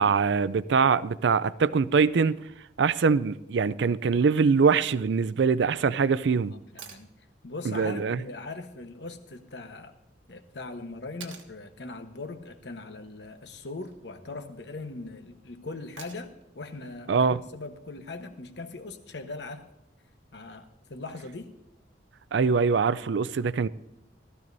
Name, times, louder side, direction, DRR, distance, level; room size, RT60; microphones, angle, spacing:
voice 1, 0.0-2.4 2.8-6.5 7.7-8.2 17.1-17.4 22.3-23.7, right 5 dB, 70° right, 0.4 m, -23 dB
voice 2, 6.5-7.1 7.4-9.9 10.3-19.7 20.3-21.5, left 3 dB, 65° left, 1.1 m, -40 dB
sound 1, 6.8-7.1 9.3-9.4 11.2-11.5 13.5-14.0 16.0-16.5 18.6-18.7, right 6 dB, 85° right, 1.4 m, -46 dB
18.5 x 13.5 x 2.7 m
head